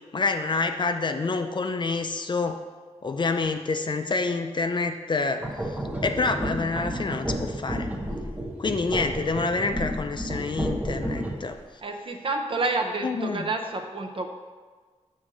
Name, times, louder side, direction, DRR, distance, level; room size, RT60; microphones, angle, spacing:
voice 1, 0.1-2.6 3.0-7.9 8.6-11.6 13.0-13.5, left 3 dB, 40° left, 7 dB, 0.4 m, -27 dB
sound 1, 5.4-11.6, equal, 10° right, 0.8 m, -31 dB
voice 2, 11.8-14.3, right 3 dB, 45° right, 4 dB, 0.8 m, -29 dB
7.1 x 3.8 x 6.2 m, 1.5 s
wide cardioid pair, 130°, 12 cm